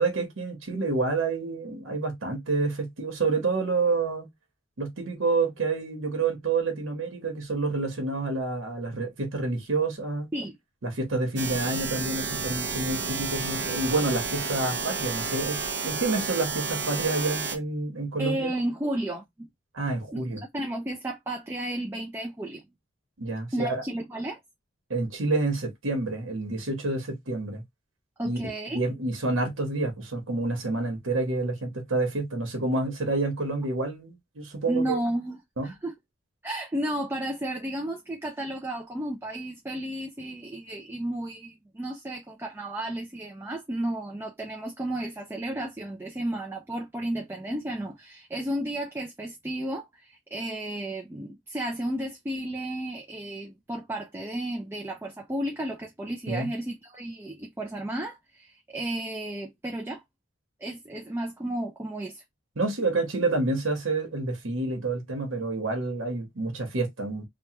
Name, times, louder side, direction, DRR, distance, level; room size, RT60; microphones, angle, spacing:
voice 1, 0.0-4.3 4.8-10.3 10.8-18.5 19.7-20.4 23.2-23.8 24.9-27.6 28.2-28.4 28.7-35.0 35.6-35.7 56.3-56.5 62.6-67.3, right 3 dB, 80° right, 1.0 m, -28 dB
sound 1, 11.4-17.6, right 4 dB, 55° right, 0.6 m, -31 dB
voice 2, 18.2-19.5 20.1-22.6 23.5-24.4 28.2-28.8 34.7-35.4 35.6-35.9 36.4-60.0 60.6-62.2, right 1 dB, 10° right, 0.3 m, -33 dB
3.0 x 2.1 x 2.8 m
head